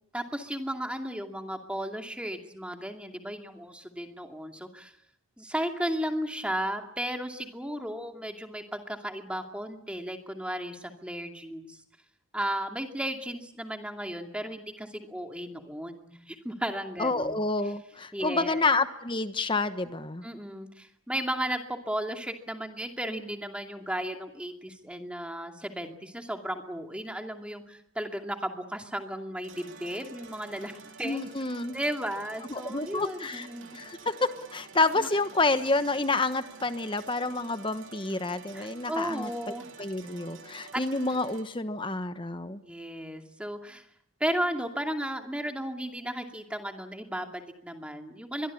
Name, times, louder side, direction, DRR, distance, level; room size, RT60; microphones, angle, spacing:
voice 1, 0.1-4.9 5.4-11.8 12.3-17.4 17.6-17.7 18.1-18.6 20.2-31.2 31.7-33.8 34.9-35.1 38.5-39.7 40.7-40.8 41.3-41.4 42.6-43.9 44.2-48.5, equal, 5° right, 4 dB, 2.5 m, -34 dB
voice 2, 17.0-20.3 31.0-31.7 32.5-33.5 33.7-39.3 39.8-42.6, left 3 dB, 25° left, 10 dB, 1.1 m, -29 dB
sound 1, 29.4-41.4, right 4 dB, 65° right, 2.9 m, -49 dB
25.0 x 23.0 x 8.6 m, 0.74 s
head